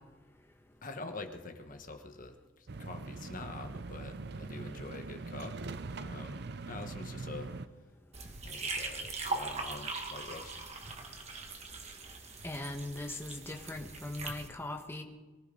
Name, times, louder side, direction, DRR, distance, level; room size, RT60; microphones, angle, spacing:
voice 1, 0.8-5.5 6.0-6.4 6.7-7.5 8.4-10.5, left 3 dB, 45° left, 6 dB, 1.4 m, -45 dB
sound 1, 2.7-7.7, right 3 dB, 55° right, 0.6 m, -42 dB
sound 2, 8.1-14.5, right 3 dB, 35° right, 1.7 m, -40 dB
voice 2, 12.4-15.0, left 2 dB, 10° left, 4 dB, 1.4 m, -40 dB
24.0 x 14.5 x 3.9 m, 1.2 s
head